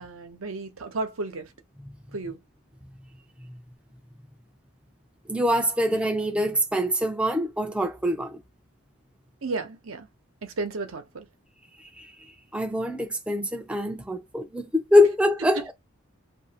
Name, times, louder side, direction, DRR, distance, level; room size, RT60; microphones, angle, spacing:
voice 1, 0.0-1.5 2.1-2.4 9.4-10.1 10.4-11.3 15.5-15.7, right 3 dB, 80° right, 0.8 m, -33 dB
voice 2, 5.3-8.4 12.0-12.1 12.5-15.7, left 1 dB, 5° right, 0.5 m, -24 dB
2.8 x 2.6 x 2.8 m
head